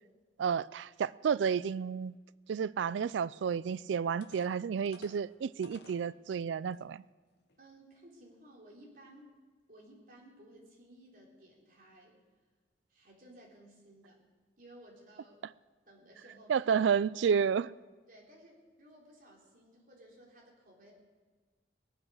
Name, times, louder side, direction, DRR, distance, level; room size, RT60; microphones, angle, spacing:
voice 1, 0.4-2.1 2.5-7.0 16.5-17.7, right 7 dB, 80° right, 0.3 m, -31 dB
sound 1, 3.6-3.7 4.2-6.1 6.7-6.8 7.3-7.5, left 3 dB, 60° left, 1.0 m, -55 dB
voice 2, 7.6-9.4 9.7-12.2 12.9-14.2 14.6-15.4 15.9-16.7 17.2-17.4 18.1-20.9, right 1 dB, 50° right, 3.8 m, -57 dB
20.0 x 8.9 x 6.4 m
head